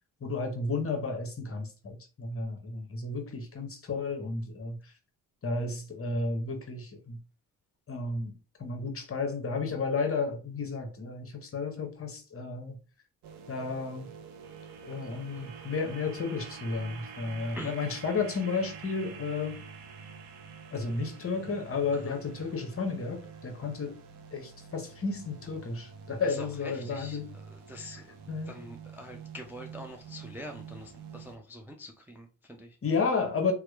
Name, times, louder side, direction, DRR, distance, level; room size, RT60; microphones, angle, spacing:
voice 1, 0.2-4.8 5.4-7.2 7.9-8.3 8.6-12.7 13.5-14.1 14.8-19.6 20.7-24.0 24.3-27.3 28.3-28.6 32.8-33.5, left 4 dB, 30° left, 0.8 m, -32 dB
sound 1, 13.2-31.4, right 6 dB, 65° right, 0.6 m, -47 dB
voice 2, 26.2-27.2 27.5-28.2 28.5-32.8, equal, 5° right, 0.4 m, -44 dB
2.8 x 2.1 x 2.3 m
hypercardioid pair, 45°, 45 cm